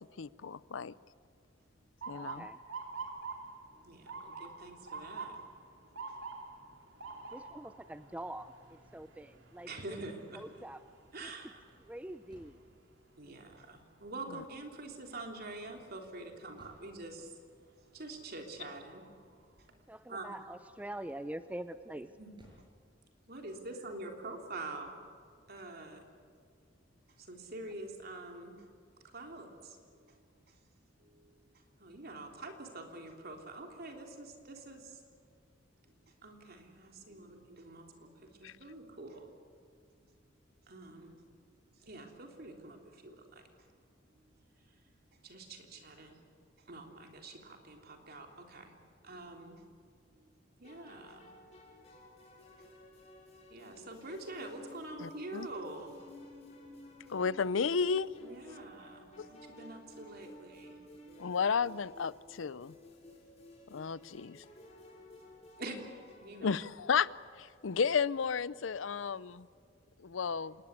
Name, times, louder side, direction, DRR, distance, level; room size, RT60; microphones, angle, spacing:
voice 1, 0.2-0.9 2.1-2.5 14.3-14.4 38.4-38.5 55.0-55.5 57.1-58.1 59.2-59.3 61.2-62.7 63.7-64.4 66.4-67.1 67.4-69.5 70.0-70.6, left 6 dB, 90° left, 19 dB, 0.6 m, -33 dB
Motor vehicle (road) / Siren, 2.0-13.9 14.3-14.8 15.6-15.9 17.7-18.0 18.5-18.6 19.0-19.7, right 4 dB, 70° right, 3.1 m, -47 dB
voice 2, 2.1-2.6 7.3-10.0 10.3-10.8 11.2-11.5 11.8-12.6 19.9-22.1, right 1 dB, 10° right, 11 dB, 0.5 m, -45 dB
voice 3, 3.8-5.4 5.9-6.2 7.1-7.2 9.6-10.4 11.1-11.6 13.2-17.3 17.9-19.1 20.1-20.3 22.2-22.3 23.3-25.0 25.5-26.1 27.2-28.6 29.0-30.2 31.0-31.3 31.8-35.0 36.2-39.3 40.7-41.2 41.8-43.7 45.2-46.2 46.7-48.7 49.0-49.6 50.6-51.3 53.5-55.9 58.2-60.8 65.2-65.3 65.6-65.8 66.2-66.5, right 2 dB, 55° right, 2 dB, 3.5 m, -46 dB
sound 1, 10.6-12.7 15.7-17.0 20.9-21.5 22.0-22.8, equal, 25° right, 6.7 m, -63 dB
sound 2, 50.6-66.6, left 1 dB, 35° left, 7.0 m, -54 dB
27.0 x 20.0 x 8.3 m, 2.2 s
head